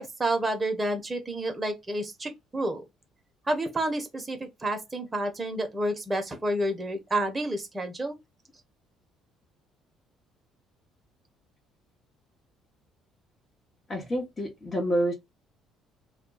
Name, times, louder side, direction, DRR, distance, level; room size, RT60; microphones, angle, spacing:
voice 1, 0.0-2.8 3.5-8.1, right 1 dB, 20° right, 0.8 m, -29 dB
voice 2, 13.9-15.1, equal, 30° left, 1.0 m, -28 dB
2.3 x 2.2 x 3.9 m
figure-of-eight pair, 50°, 0 cm